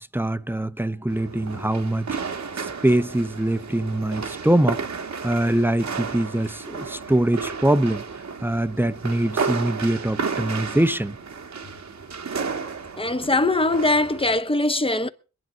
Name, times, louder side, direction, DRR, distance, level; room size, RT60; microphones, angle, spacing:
voice 1, 0.0-2.1 2.6-4.8 5.2-8.0 8.4-11.2, right 1 dB, 5° right, 0.8 m, -23 dB
sound 1, 1.1-14.4, right 5 dB, 65° right, 1.3 m, -32 dB
voice 2, 13.0-15.1, left 2 dB, 20° left, 1.0 m, -21 dB
21.5 x 10.5 x 3.9 m
cardioid pair, 65°, 30 cm